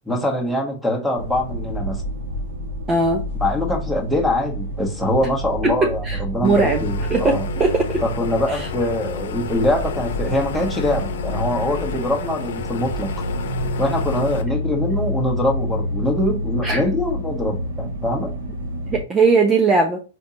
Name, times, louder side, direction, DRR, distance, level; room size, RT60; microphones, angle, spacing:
voice 1, 0.1-2.0 3.3-7.4 8.0-13.1 13.8-18.3, left 1 dB, ahead, 1.5 m, -23 dB
sound 1, 1.2-19.0, equal, 70° right, 1.8 m, -28 dB
voice 2, 2.9-3.2 5.6-6.8 7.1-8.0 8.5-8.7 16.6-16.8 18.9-20.0, right 3 dB, 20° right, 0.8 m, -19 dB
sound 2, 6.4-14.4, left 6 dB, 70° left, 0.9 m, -32 dB
5.2 x 3.4 x 2.8 m
hypercardioid pair, 125°, 0 cm